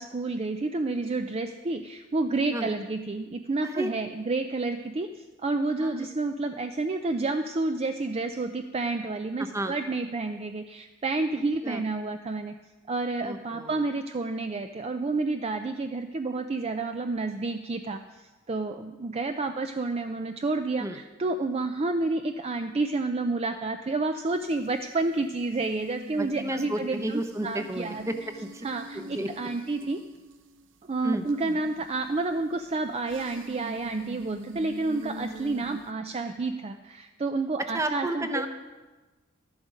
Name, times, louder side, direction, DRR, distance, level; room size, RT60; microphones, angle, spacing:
voice 1, 0.0-1.8 2.1-5.1 5.4-10.6 11.0-12.5 12.9-18.0 18.5-18.7 19.0-20.8 21.2-28.1 28.6-28.8 29.4-30.0 30.9-36.7 37.2-38.3, right 3 dB, 30° right, 7 dB, 0.4 m, -29 dB
voice 2, 9.4-9.7 11.6-11.8 13.2-13.7 20.8-21.0 26.2-28.7 29.1-29.3 31.0-31.2 37.7-38.5, right 1 dB, 15° right, 7 dB, 0.8 m, -32 dB
sound 1, 24.3-24.7 25.4-30.7 31.3-35.9, right 2 dB, 70° right, 0.8 m, -44 dB
13.0 x 11.0 x 5.1 m, 1.2 s
head